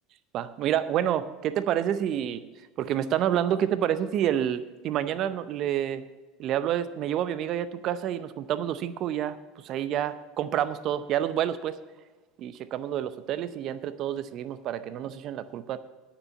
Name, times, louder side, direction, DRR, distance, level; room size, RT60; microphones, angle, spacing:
voice 1, 0.3-2.4 2.8-6.0 6.4-9.4 9.6-11.8 12.4-15.8, right 10 dB, 50° right, 13 dB, 0.6 m, -28 dB
9.4 x 7.2 x 7.3 m, 1.3 s
hypercardioid pair, 80°, 0 cm